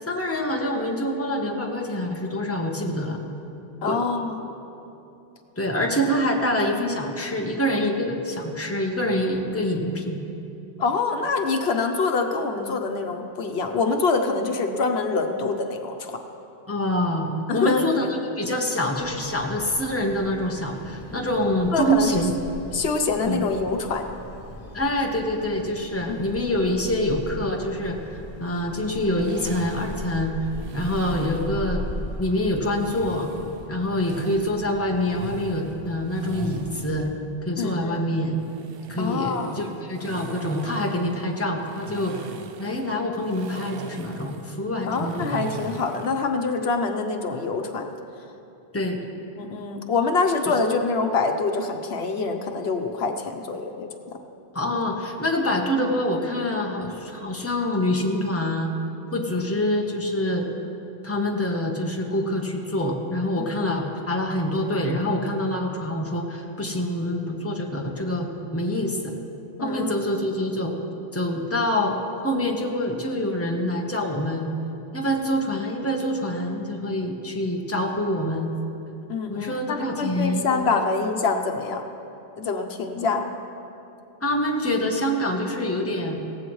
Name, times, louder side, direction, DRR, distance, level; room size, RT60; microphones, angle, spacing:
voice 1, 0.0-3.2 3.8-4.0 5.6-10.2 16.7-22.3 23.3-23.4 24.7-30.3 30.7-31.8 32.2-33.3 33.7-37.1 37.4-38.4 38.9-42.2 42.6-45.4 48.7-49.0 54.5-58.7 59.1-60.5 61.0-68.3 68.5-69.1 69.6-70.7 71.1-72.0 72.2-74.5 74.9-78.5 79.3-80.8 83.0-83.2 84.2-86.3, left 1 dB, 15° left, 0 dB, 1.1 m, -26 dB
voice 2, 3.8-4.5 10.8-16.2 17.5-17.9 21.7-22.1 22.7-24.1 26.1-26.2 37.6-38.0 39.0-39.7 44.9-47.9 49.4-54.2 69.6-69.9 79.1-81.8 82.4-83.2, left 4 dB, 85° left, 5 dB, 1.1 m, -25 dB
sound 1, 19.0-37.1, left 2 dB, 35° left, 0.9 m, -39 dB
sound 2, 29.2-31.6 32.7-34.5 34.9-36.9 38.4-46.3, right 5 dB, 70° right, 0.8 m, -40 dB
17.0 x 15.0 x 3.2 m, 2.8 s
omnidirectional pair, 1.0 m